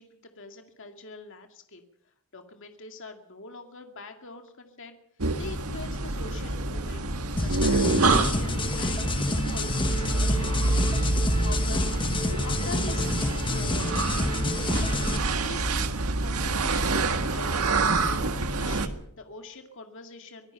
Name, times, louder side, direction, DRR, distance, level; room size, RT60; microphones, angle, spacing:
voice 1, 0.0-1.8 2.3-5.0 5.4-7.0 7.4-10.5 11.4-12.1 12.4-13.9 14.6-15.9 16.2-20.5, left 3 dB, 60° left, 4 dB, 2.2 m, -43 dB
sound 1, 5.2-18.9, right 2 dB, 85° right, 1.7 m, -27 dB
sound 2, 7.4-15.2, left 2 dB, 20° left, 1.3 m, -29 dB
25.0 x 18.0 x 5.7 m, 0.70 s
head